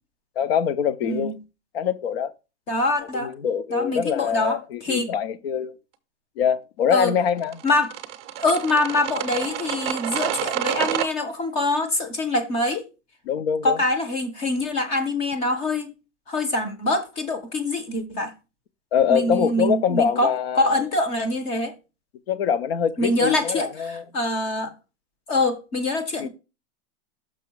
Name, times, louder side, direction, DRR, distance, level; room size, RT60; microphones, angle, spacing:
voice 1, 0.4-1.3 1.7-2.3 3.1-5.7 6.4-7.6 13.3-13.8 18.9-20.8 22.3-24.0 26.2-26.3, left 8 dB, 55° left, 0.8 m, -24 dB
voice 2, 1.0-1.4 2.7-3.3 3.7-5.1 6.9-7.1 7.6-7.9 8.4-12.9 13.6-15.9 16.3-18.3 19.1-21.7 23.0-24.7 25.3-26.3, left 2 dB, 15° left, 0.7 m, -24 dB
sound 1, 7.4-11.1, right 11 dB, 20° right, 0.7 m, -28 dB
6.3 x 6.0 x 4.5 m
supercardioid pair, 170°, 36 cm